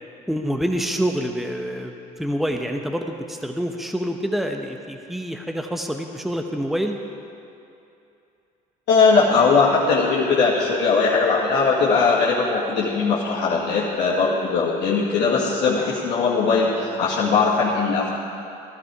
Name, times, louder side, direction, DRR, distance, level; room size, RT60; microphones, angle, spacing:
voice 1, 0.3-7.0, equal, ahead, 4 dB, 1.1 m, -27 dB
voice 2, 8.9-18.1, left 4 dB, 60° left, -6 dB, 2.1 m, -19 dB
16.0 x 11.5 x 4.9 m, 2.7 s
hypercardioid pair, 70°, 20 cm